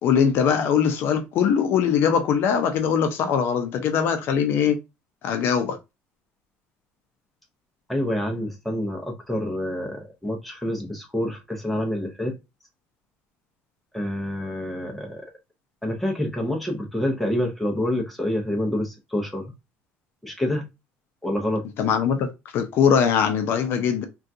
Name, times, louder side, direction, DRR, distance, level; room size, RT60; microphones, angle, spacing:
voice 1, 0.0-4.8 5.2-5.8 21.8-24.1, left 7 dB, 55° left, 0.5 m, -21 dB
voice 2, 7.9-12.4 13.9-15.2 15.8-19.5 20.2-20.7 21.2-21.6, left 1 dB, ahead, 0.6 m, -27 dB
3.6 x 2.3 x 2.6 m
cardioid pair, 160°, 5 cm